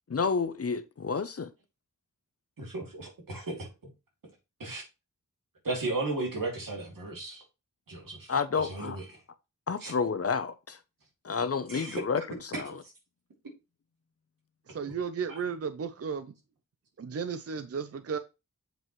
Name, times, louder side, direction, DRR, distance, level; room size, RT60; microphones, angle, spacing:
voice 1, 0.1-1.5 8.3-9.0 9.7-10.8 11.2-12.8, left 5 dB, 45° left, 0.7 m, -30 dB
voice 2, 2.6-3.7 4.6-4.8 5.6-7.4 7.9-8.3 8.6-9.0 9.8-9.9 11.7-12.0 12.5-12.9 14.9-15.0 15.3-15.4, right 2 dB, 85° right, 2.7 m, -35 dB
voice 3, 14.7-16.3 17.0-18.2, right 6 dB, 50° right, 0.5 m, -34 dB
7.7 x 5.1 x 3.1 m
wide cardioid pair, 90°, 32 cm